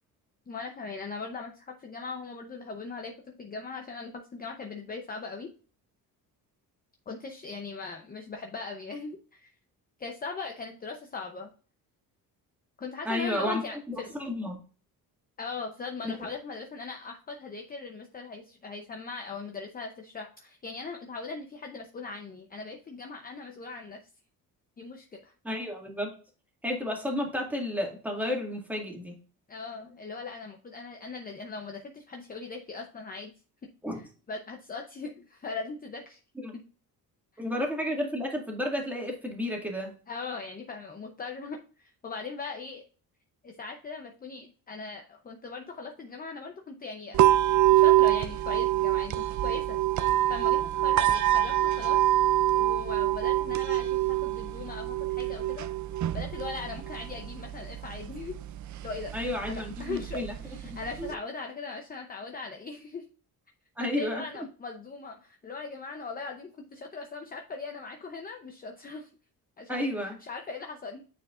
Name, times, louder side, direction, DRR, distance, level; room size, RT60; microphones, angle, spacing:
voice 1, 0.5-5.5 7.1-9.5 10.0-11.5 12.8-14.1 15.4-24.0 24.8-25.3 29.5-33.3 34.3-36.2 37.3-37.4 40.1-42.8 43.4-47.3 47.7-49.8 50.3-52.0 52.5-55.7 56.1-58.4 58.8-59.2 59.5-63.0 63.8-69.1 69.6-69.8 70.2-71.0, left 4 dB, 25° left, 3 dB, 0.7 m, -39 dB
voice 2, 13.1-14.6 16.0-16.1 25.4-26.1 26.6-29.1 33.8-34.0 36.4-36.5 37.4-39.9 59.1-60.3 60.7-61.1 63.8-64.5 69.7-70.1, left 1 dB, 5° right, 0 dB, 1.9 m, -32 dB
sound 1, 47.1-61.1, right 14 dB, 55° right, 0.5 m, -26 dB
9.1 x 4.7 x 2.4 m, 0.38 s
cardioid pair, 135°, 37 cm